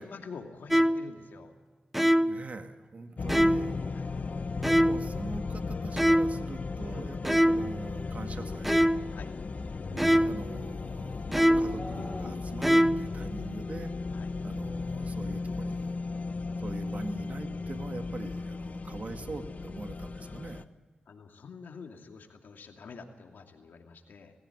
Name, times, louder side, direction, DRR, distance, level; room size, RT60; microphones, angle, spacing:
voice 1, 0.0-1.5 3.9-4.1 6.9-7.1 9.1-9.3 14.1-14.3 21.1-24.3, left 5 dB, 75° left, 3 dB, 2.7 m, -47 dB
sound 1, 0.7-1.1 1.9-2.5 3.3-3.8 4.6-5.1 6.0-6.5 7.3-7.8 8.6-9.1 10.0-10.4 11.3-11.8 12.6-13.1, equal, 5° right, 0.8 m, -24 dB
voice 2, 2.2-3.8 4.6-8.8 9.9-13.9 14.4-15.9 16.6-20.7, right 3 dB, 50° right, 6 dB, 2.0 m, -42 dB
sound 2, 3.2-20.6, left 4 dB, 50° left, 0.9 m, -36 dB
Livestock farm animals working animals, 9.5-12.8, left 2 dB, 25° left, 5.0 m, -44 dB
19.5 x 16.5 x 8.6 m, 1.4 s
cardioid pair, 60°, 3 cm